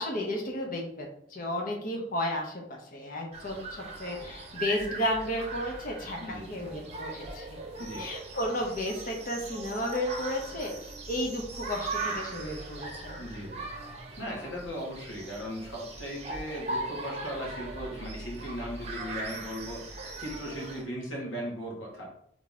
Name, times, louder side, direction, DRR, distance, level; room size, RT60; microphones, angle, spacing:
voice 1, 0.0-2.6 2.9-7.5 8.0-10.7 11.1-13.2, left 1 dB, 45° left, 0 dB, 1.0 m, -33 dB
sound 1, 3.3-20.8, right 2 dB, 35° right, 0.8 m, -39 dB
voice 2, 6.2-6.6 7.8-8.0 13.2-13.6 14.2-22.1, equal, 80° left, -3 dB, 1.9 m, -38 dB
4.0 x 3.6 x 3.6 m, 0.67 s
head